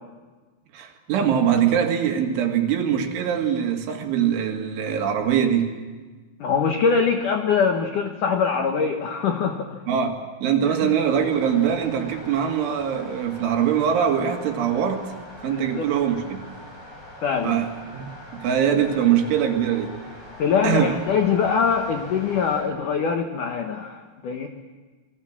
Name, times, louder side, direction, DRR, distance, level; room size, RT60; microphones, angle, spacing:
voice 1, 0.7-5.8 9.9-15.1 15.4-16.5 17.4-20.0 20.6-21.0, right 8 dB, 70° right, 4 dB, 4.4 m, -23 dB
voice 2, 6.4-9.8 10.8-11.0 15.4-15.9 17.2-17.6 20.4-24.5, left 6 dB, 80° left, 5 dB, 1.8 m, -23 dB
sound 1, 11.0-22.6, left 1 dB, 40° left, 8.5 m, -42 dB
27.5 x 21.5 x 7.4 m, 1.3 s
omnidirectional pair, 5.8 m